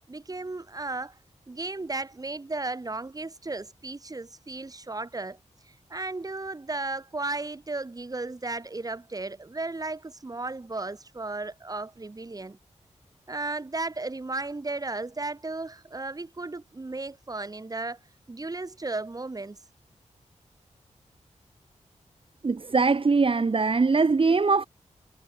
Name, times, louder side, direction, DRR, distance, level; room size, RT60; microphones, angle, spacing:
voice 1, 0.1-1.2 1.5-5.4 5.9-12.6 13.3-18.0 18.3-19.6, right 3 dB, 30° right, 5.6 m, -34 dB
voice 2, 22.4-24.6, right 4 dB, 45° right, 4.1 m, -22 dB
wide cardioid pair, 115°, 13 cm